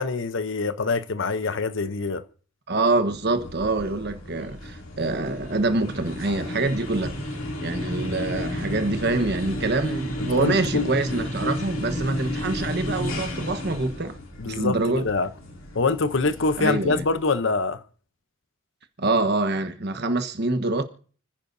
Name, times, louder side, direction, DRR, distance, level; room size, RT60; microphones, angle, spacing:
voice 1, 0.0-2.2 10.2-10.9 14.4-15.3 15.7-17.8, left 3 dB, 65° left, 0.8 m, -25 dB
voice 2, 2.7-7.1 7.6-14.2 14.4-15.0 16.6-17.0 19.0-20.8, right 2 dB, 55° right, 1.3 m, -25 dB
sound 1, 3.0-17.5, left 1 dB, 85° left, 2.9 m, -33 dB
29.5 x 10.0 x 2.7 m
head